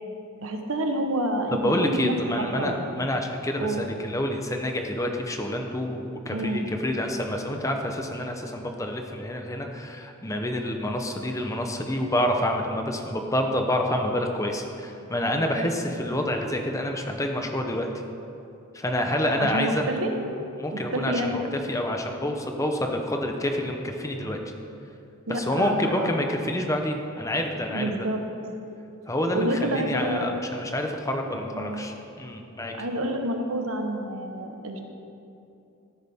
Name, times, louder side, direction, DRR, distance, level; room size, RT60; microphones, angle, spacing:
voice 1, 0.4-2.7 3.6-3.8 6.3-6.7 15.6-15.7 19.4-20.1 20.7-21.4 25.3-26.1 27.7-28.2 29.3-30.3 31.5-31.9 32.7-34.8, right 1 dB, 85° right, 3 dB, 1.2 m, -28 dB
voice 2, 1.5-17.9 18.7-19.9 20.6-24.4 25.3-27.9 29.1-32.7, left 1 dB, 15° left, 3 dB, 0.8 m, -28 dB
13.5 x 11.0 x 3.6 m, 2.7 s
head